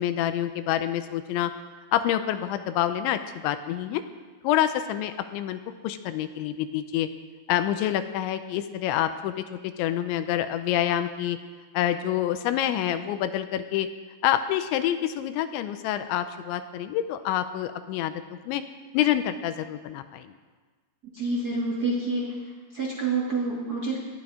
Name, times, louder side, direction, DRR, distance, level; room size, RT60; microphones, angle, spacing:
voice 1, 0.0-1.5 1.9-4.0 4.4-7.1 7.5-11.4 11.7-13.9 14.2-18.6 18.9-20.3, left 11 dB, 80° left, 10 dB, 2.9 m, -27 dB
voice 2, 21.1-22.3 22.7-24.0, right 3 dB, 45° right, -3 dB, 1.2 m, -27 dB
18.5 x 12.5 x 5.0 m, 1.4 s
omnidirectional pair, 5.4 m